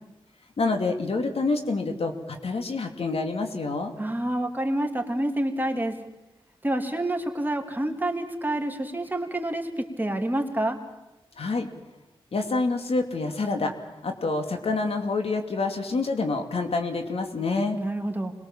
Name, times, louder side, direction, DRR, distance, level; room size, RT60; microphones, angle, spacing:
voice 1, 0.6-3.9 11.4-11.7 12.3-13.7 14.0-17.8, left 3 dB, 75° left, 5 dB, 2.7 m, -27 dB
voice 2, 4.0-6.0 6.6-10.8 17.8-18.3, right 1 dB, 20° right, 3 dB, 3.0 m, -28 dB
26.0 x 21.5 x 7.5 m, 0.99 s
wide cardioid pair, 70°, 10 cm